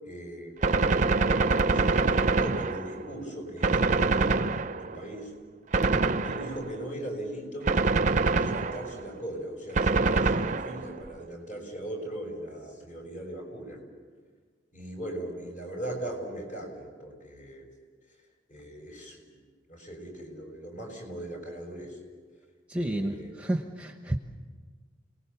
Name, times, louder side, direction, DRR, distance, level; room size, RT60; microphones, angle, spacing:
voice 1, 0.0-5.3 6.2-7.7 8.4-13.8 14.7-17.6 18.5-19.2 19.7-22.0 22.7-23.3, right 1 dB, 45° left, 2 dB, 6.2 m, -39 dB
Gunshot gunfire, 0.6-3.1 3.6-5.0 5.7-6.8 7.7-9.0 9.8-11.0, right 3 dB, 40° right, 0.6 m, -25 dB
voice 2, 22.7-24.2, right 1 dB, 5° right, 4 dB, 1.0 m, -31 dB
29.5 x 19.0 x 7.1 m, 1.5 s
head